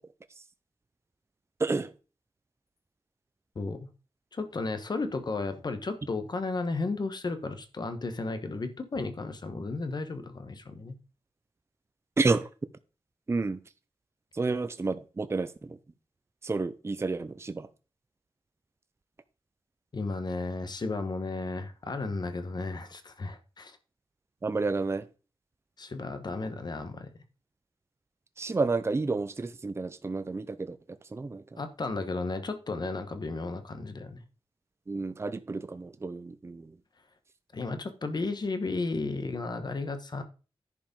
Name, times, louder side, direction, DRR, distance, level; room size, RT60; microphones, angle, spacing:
voice 1, 1.6-1.9 12.2-12.5 13.3-13.6 14.3-15.8 16.4-17.7 24.4-25.0 28.4-30.8 31.1-31.4 34.9-36.7, right 3 dB, 25° right, 0.6 m, -30 dB
voice 2, 3.5-3.9 4.3-11.0 19.9-23.8 25.8-27.1 31.6-34.2 37.5-40.2, left 3 dB, 45° left, 1.2 m, -34 dB
10.5 x 4.9 x 5.3 m
wide cardioid pair, 130°, 10 cm